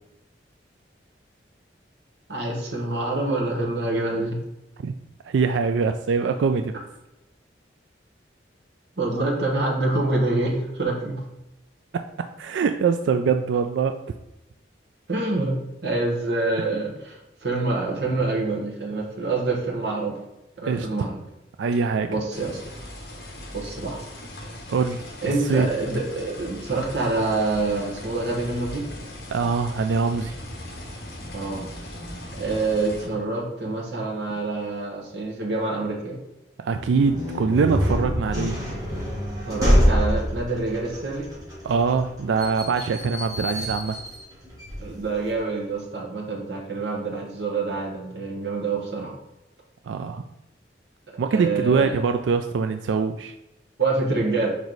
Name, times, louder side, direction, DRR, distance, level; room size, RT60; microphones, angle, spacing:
voice 1, 2.3-4.4 9.0-11.2 15.1-20.2 20.6-21.2 22.1-22.6 23.5-24.0 25.2-28.9 31.3-31.7 32.4-36.2 39.5-41.3 44.8-49.1 51.3-52.0 53.8-54.6, right 2 dB, 65° right, -2 dB, 1.2 m, -26 dB
voice 2, 5.2-6.7 11.9-12.0 12.4-14.0 20.6-20.9 21.6-22.1 24.7-25.0 25.5-25.7 29.3-30.4 36.6-38.6 41.6-44.0 49.9-50.2 51.2-53.3, right 5 dB, 85° right, 7 dB, 0.4 m, -23 dB
sound 1, 22.3-33.1, left 1 dB, 55° left, 1.4 m, -39 dB
sound 2, 36.7-45.4, equal, 20° right, 1.9 m, -26 dB
5.3 x 4.7 x 4.0 m, 0.91 s
head